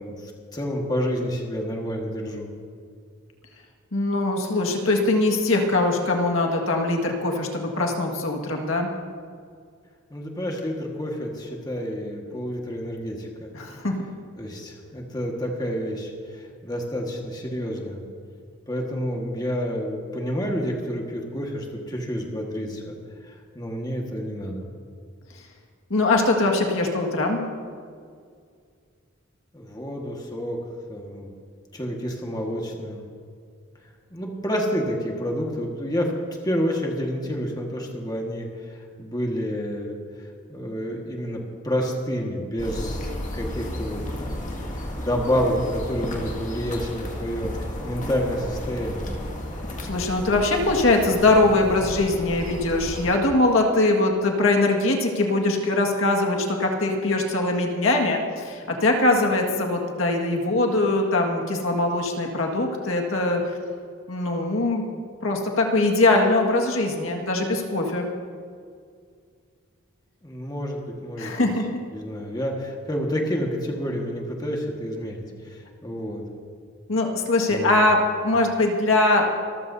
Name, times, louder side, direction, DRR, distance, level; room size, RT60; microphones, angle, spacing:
voice 1, 0.0-2.5 10.1-13.5 14.4-18.0 18.7-23.0 23.3-24.7 29.5-30.6 30.9-31.3 31.7-33.0 34.1-36.1 36.4-40.0 40.5-44.5 45.0-49.1 70.2-71.5 71.9-76.2 77.5-77.9, equal, 20° left, 0 dB, 1.6 m, -29 dB
voice 2, 3.9-8.9 13.5-14.0 25.9-27.4 49.9-63.4 64.1-64.9 65.2-68.1 71.2-71.7 76.9-79.3, left 2 dB, 75° left, 1 dB, 1.9 m, -22 dB
sound 1, 42.6-53.2, left 1 dB, 35° left, 2.0 m, -33 dB
25.5 x 14.5 x 2.7 m, 2.2 s
head